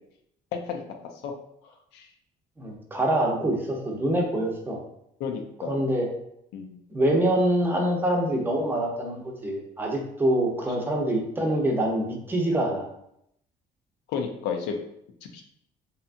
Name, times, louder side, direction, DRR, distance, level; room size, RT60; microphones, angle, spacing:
voice 1, 2.6-4.8 5.6-6.1 6.9-12.9, right 1 dB, 10° right, 0 dB, 0.6 m, -25 dB
voice 2, 5.2-5.8 6.5-6.8 14.1-14.8 15.3-15.4, left 6 dB, 90° left, 3 dB, 0.5 m, -31 dB
2.8 x 2.3 x 2.5 m, 0.75 s
cardioid pair, 110°, 17 cm